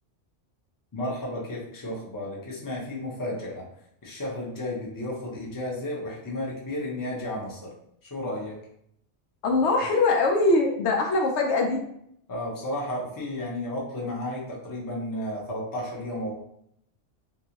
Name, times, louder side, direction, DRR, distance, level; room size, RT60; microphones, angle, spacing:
voice 1, 0.9-3.7 4.0-7.7 8.0-8.6 12.3-16.3, left 1 dB, 20° left, -4 dB, 0.6 m, -33 dB
voice 2, 9.4-11.8, left 3 dB, 75° left, 2 dB, 0.9 m, -22 dB
3.7 x 2.3 x 2.9 m, 0.73 s
omnidirectional pair, 1.2 m